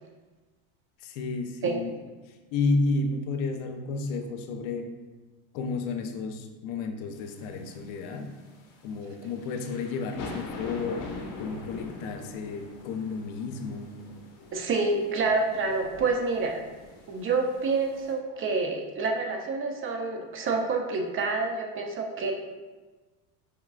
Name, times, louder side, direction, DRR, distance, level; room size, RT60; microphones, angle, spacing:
voice 1, 1.0-1.9 2.5-4.9 5.5-8.3 8.8-14.0, left 3 dB, 75° left, 6 dB, 0.6 m, -32 dB
sound 1, 7.2-18.1, left 3 dB, 55° left, 0.9 m, -43 dB
voice 2, 14.5-16.6 17.1-22.3, right 3 dB, 35° right, 3 dB, 0.6 m, -28 dB
5.0 x 3.5 x 2.4 m, 1.2 s
supercardioid pair, 120°, 38 cm